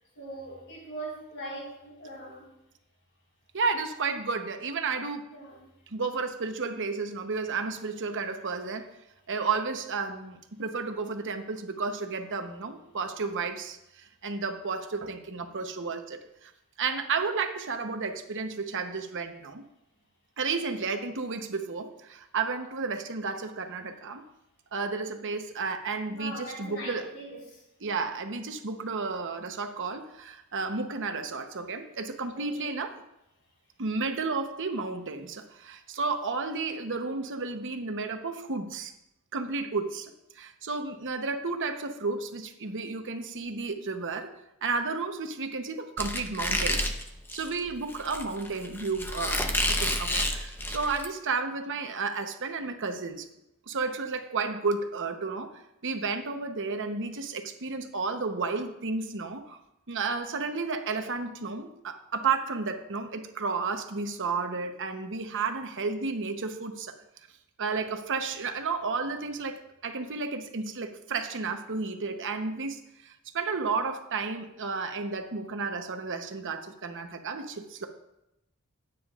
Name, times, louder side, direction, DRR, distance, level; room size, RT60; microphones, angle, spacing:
voice 1, 0.2-2.5 5.3-5.6 20.7-20.8 26.1-27.6 32.3-32.8, right 1 dB, 60° left, -3 dB, 4.4 m, -41 dB
voice 2, 3.5-5.3 5.9-8.9 9.3-16.5 16.8-19.6 20.4-24.2 24.7-27.1 27.8-32.9 33.8-38.9 39.3-44.3 44.6-46.9 47.3-53.2 53.7-59.6 59.9-66.9 67.6-77.9, right 4 dB, 60° right, 6 dB, 0.9 m, -32 dB
Squeak, 46.0-51.1, left 1 dB, 10° left, 0.8 m, -30 dB
15.0 x 9.3 x 2.4 m, 0.87 s
head